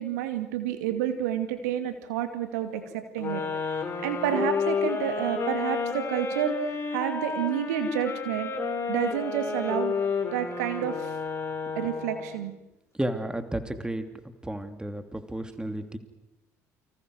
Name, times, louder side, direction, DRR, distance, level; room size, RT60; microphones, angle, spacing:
voice 1, 0.0-3.4 4.0-8.5 8.9-9.9 10.3-11.1 11.7-12.5, right 10 dB, 75° right, 8 dB, 2.4 m, -29 dB
sound 1, 3.2-12.4, left 4 dB, 30° left, 5.9 m, -31 dB
voice 2, 13.0-14.1 14.4-16.0, right 1 dB, 10° right, 8 dB, 2.9 m, -32 dB
29.5 x 25.5 x 6.4 m, 0.93 s
hypercardioid pair, 60°, 9 cm